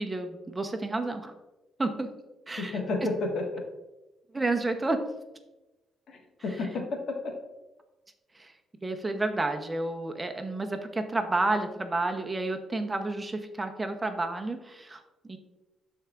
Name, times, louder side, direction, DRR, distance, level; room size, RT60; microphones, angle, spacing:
voice 1, 0.0-1.3 1.8-2.1 2.5-2.8 4.3-5.0 8.3-8.5 8.8-15.4, right 2 dB, 20° right, 6 dB, 0.8 m, -30 dB
voice 2, 2.6-3.4 6.1-7.3, left 3 dB, 65° left, 1 dB, 1.6 m, -31 dB
12.5 x 4.5 x 2.5 m, 1.0 s
cardioid pair, 90°, 0 cm